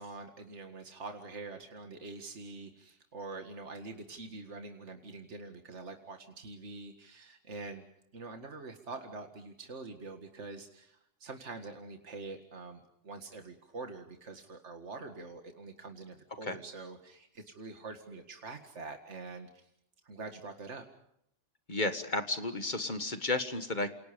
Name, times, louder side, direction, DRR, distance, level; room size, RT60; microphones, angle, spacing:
voice 1, 0.0-7.8 8.1-19.5 20.0-20.8, right 3 dB, 75° right, 5 dB, 2.2 m, -45 dB
voice 2, 21.7-23.9, left 2 dB, 40° left, 9 dB, 1.8 m, -33 dB
29.0 x 28.0 x 5.2 m, 0.75 s
omnidirectional pair, 1.2 m